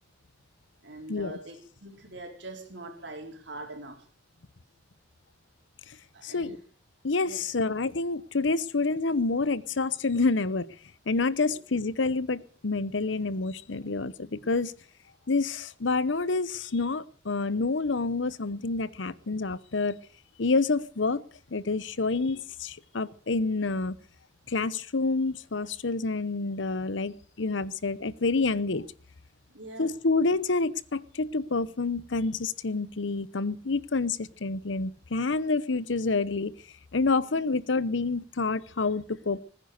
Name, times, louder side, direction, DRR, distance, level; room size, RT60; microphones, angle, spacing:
voice 1, 0.8-4.0 6.1-6.6 7.3-7.4 11.4-11.6 29.5-29.9 37.1-37.2, right 2 dB, 70° right, 4.1 m, -43 dB
voice 2, 6.2-6.6 7.0-10.7 11.1-14.7 15.3-20.0 20.4-21.2 21.5-23.9 24.5-28.9 29.8-36.5 36.9-39.4, left 3 dB, 85° left, 0.9 m, -28 dB
20.0 x 10.0 x 6.6 m
head